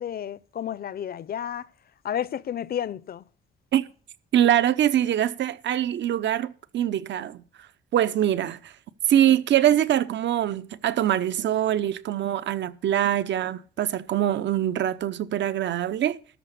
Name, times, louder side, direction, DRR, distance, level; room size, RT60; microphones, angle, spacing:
voice 1, 0.0-1.7 2.0-3.2, left 9 dB, 50° left, 0.6 m, -31 dB
voice 2, 4.3-7.4 7.9-8.7 9.1-16.2, right 11 dB, 65° right, 0.8 m, -23 dB
13.0 x 4.9 x 8.2 m
cardioid pair, 90°, 20 cm